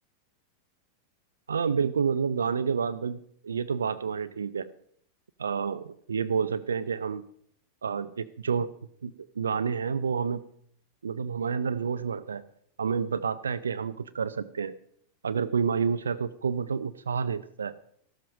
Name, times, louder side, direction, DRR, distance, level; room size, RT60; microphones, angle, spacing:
voice 1, 1.5-3.2 3.4-4.7 5.4-7.2 7.8-8.7 9.0-10.4 11.0-12.4 12.8-14.7 15.2-17.7, right 6 dB, 70° right, 11 dB, 0.5 m, -29 dB
13.0 x 13.0 x 5.2 m, 0.66 s
figure-of-eight pair, 90°, 0 cm